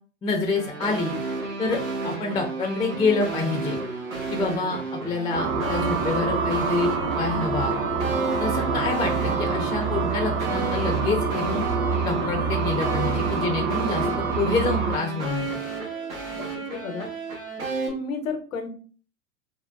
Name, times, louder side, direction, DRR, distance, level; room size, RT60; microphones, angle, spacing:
voice 1, 0.2-1.2 1.6-1.8 2.0-3.8 4.3-7.8 8.4-11.6 12.0-15.6, left 3 dB, 10° left, 2 dB, 0.5 m, -27 dB
sound 1, 0.5-17.9, right 3 dB, 85° right, 1.2 m, -32 dB
sound 2, 5.3-15.0, right 4 dB, 45° right, 0.7 m, -26 dB
voice 2, 16.3-17.1 17.9-18.7, left 4 dB, 80° left, 6 dB, 0.8 m, -32 dB
3.7 x 2.2 x 2.2 m, 0.41 s
hypercardioid pair, 90°, 40 cm